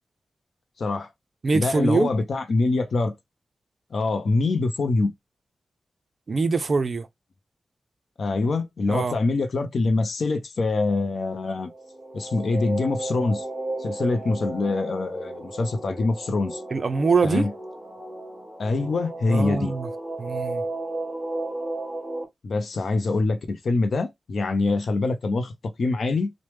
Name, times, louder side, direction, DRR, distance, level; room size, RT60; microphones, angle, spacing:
voice 1, 0.8-1.1 1.5-3.1 3.9-5.1 8.2-11.7 12.1-13.5 13.8-16.6 17.2-17.5 18.6-19.7 22.4-25.5 25.8-26.3, left 3 dB, 65° left, 0.6 m, -24 dB
voice 2, 1.4-2.1 6.3-7.1 8.9-9.2 16.7-17.5 19.3-19.9 20.2-20.6, right 4 dB, 50° right, 0.4 m, -23 dB
sound 1, 11.6-22.3, right 2 dB, 15° right, 1.5 m, -34 dB
3.1 x 2.0 x 3.1 m
wide cardioid pair, 100°, 0 cm